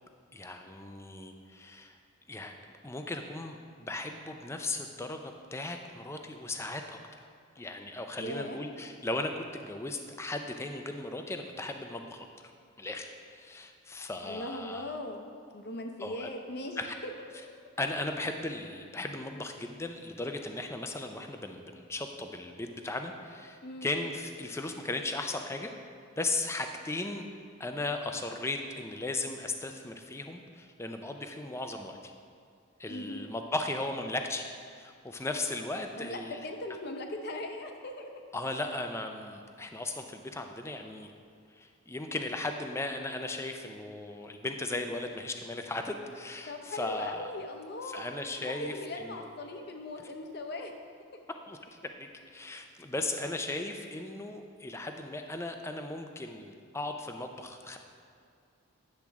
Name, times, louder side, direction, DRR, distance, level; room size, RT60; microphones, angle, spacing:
voice 1, 0.3-2.0 2.3-2.5 2.8-7.0 7.6-12.3 12.8-14.9 16.0-16.3 16.8-16.9 17.8-25.7 26.2-27.2 27.6-32.1 32.8-36.4 38.3-41.1 41.5-47.3 47.9-49.3 51.5-51.6 51.8-57.8, left 2 dB, 10° left, 5 dB, 0.4 m, -37 dB
voice 2, 8.2-8.6 14.2-17.1 23.6-23.9 32.9-33.2 35.9-38.1 46.5-48.1 48.4-50.7, left 1 dB, 50° left, 4 dB, 0.7 m, -39 dB
9.9 x 7.3 x 3.5 m, 2.3 s
head